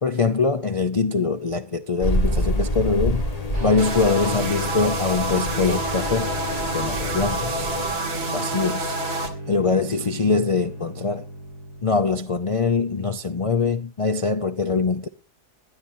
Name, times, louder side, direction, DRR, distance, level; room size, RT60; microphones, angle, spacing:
voice 1, 0.0-3.2 3.6-6.3 6.7-7.7 8.3-9.0 9.5-11.3 11.8-15.1, left 4 dB, 55° left, 0.3 m, -23 dB
sound 1, 2.0-8.0, left 1 dB, 25° left, 1.8 m, -27 dB
sound 2, 3.5-13.3, right 1 dB, 75° right, 3.7 m, -37 dB
sound 3, 3.8-9.3, right 2 dB, 40° right, 1.8 m, -28 dB
19.5 x 12.0 x 2.7 m
omnidirectional pair, 1.7 m